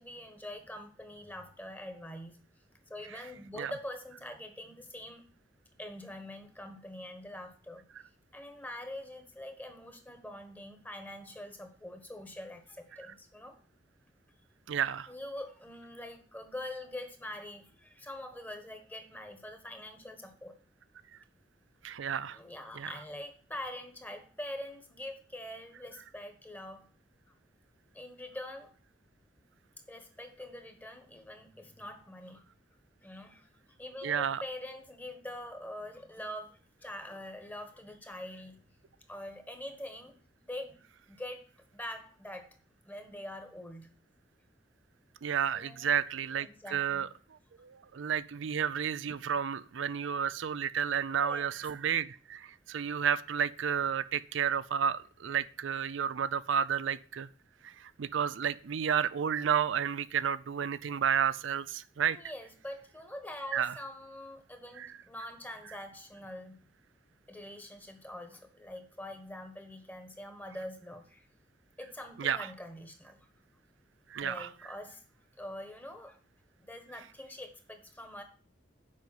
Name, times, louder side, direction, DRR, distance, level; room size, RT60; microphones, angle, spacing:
voice 1, 0.0-2.4 2.9-5.2 5.8-7.9 8.3-13.6 15.1-20.6 22.3-26.9 27.9-28.7 29.9-32.4 33.0-33.5 33.8-38.6 39.1-40.2 40.4-40.8 41.1-41.4 41.7-42.6 42.8-43.9 45.5-45.9 46.4-47.1 51.2-51.5 62.1-66.6 67.3-71.3 71.8-73.3 74.2-75.0 75.4-76.2 76.6-78.2, left 1 dB, 10° left, 6 dB, 1.2 m, -44 dB
voice 2, 14.7-15.1 21.8-22.4 22.8-22.9 34.0-34.4 45.2-47.1 47.6-57.3 57.8-62.2 63.5-63.7 64.8-64.9 72.2-72.4 74.1-74.5, right 8 dB, 85° right, 15 dB, 0.5 m, -31 dB
7.5 x 5.2 x 7.4 m, 0.41 s
head